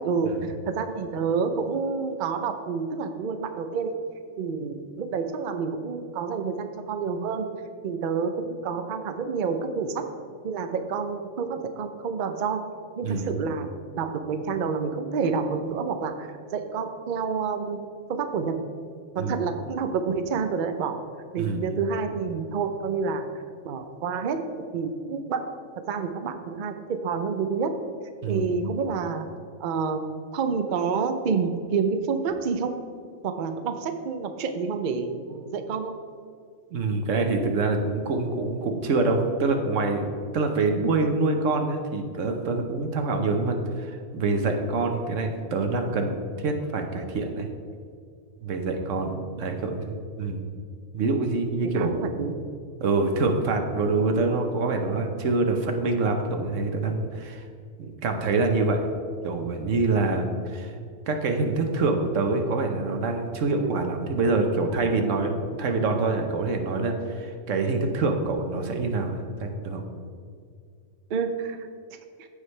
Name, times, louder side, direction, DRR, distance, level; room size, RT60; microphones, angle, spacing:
voice 1, 0.0-3.9 4.4-7.5 7.8-10.1 10.4-12.6 13.0-13.7 14.0-17.8 18.1-18.6 19.1-21.0 21.3-23.3 23.6-25.5 25.9-27.7 28.3-29.3 29.6-30.0 30.3-32.7 33.2-36.0 49.3-49.5 51.8-52.4 63.6-63.8 71.1-71.6, right 5 dB, 50° right, 7 dB, 0.7 m, -28 dB
voice 2, 13.0-13.3 19.2-19.3 21.4-21.8 28.2-28.5 36.7-47.5 48.4-50.5 50.9-52.1 52.8-57.4 57.8-58.8 59.2-60.7 61.1-69.8, right 3 dB, 90° right, 4 dB, 1.3 m, -26 dB
14.5 x 4.9 x 3.2 m, 2.2 s
omnidirectional pair, 1.3 m